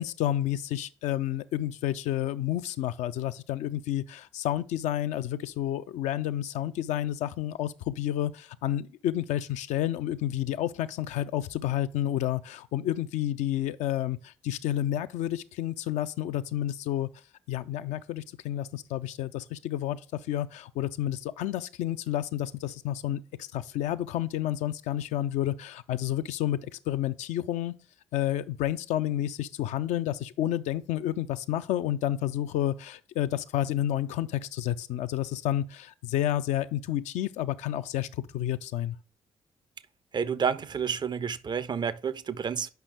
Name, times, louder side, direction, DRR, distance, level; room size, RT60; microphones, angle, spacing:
voice 1, 0.0-17.1 17.5-20.0 20.3-27.7 28.1-39.0, left 12 dB, 60° left, 0.4 m, -30 dB
voice 2, 40.1-42.7, right 6 dB, 30° right, 0.5 m, -30 dB
8.0 x 5.5 x 3.3 m
figure-of-eight pair, 40°, 14 cm